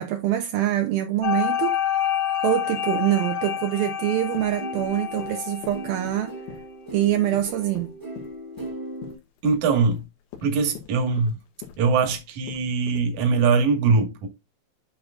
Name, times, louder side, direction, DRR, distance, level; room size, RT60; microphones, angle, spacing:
voice 1, 0.0-1.7 2.4-6.3 6.9-7.9, right 13 dB, 80° right, 2.1 m, -24 dB
sound 1, 1.2-6.3, left 10 dB, 55° left, 2.0 m, -28 dB
sound 2, 4.0-9.1, right 1 dB, 25° right, 0.4 m, -38 dB
sound 3, 4.3-13.3, left 9 dB, 85° left, 3.9 m, -44 dB
voice 2, 9.4-10.0 10.4-11.3 11.8-14.3, right 4 dB, 55° right, 2.4 m, -22 dB
10.5 x 5.0 x 2.4 m
omnidirectional pair, 5.3 m